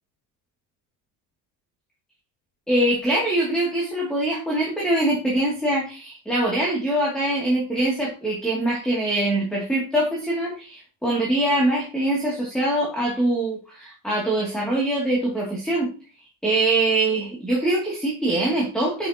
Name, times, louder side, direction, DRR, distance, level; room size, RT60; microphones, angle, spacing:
voice 1, 2.7-15.9 16.4-19.1, right 1 dB, ahead, -4 dB, 2.5 m, -23 dB
8.8 x 7.9 x 2.9 m, 0.33 s
cardioid pair, 170°, 45 cm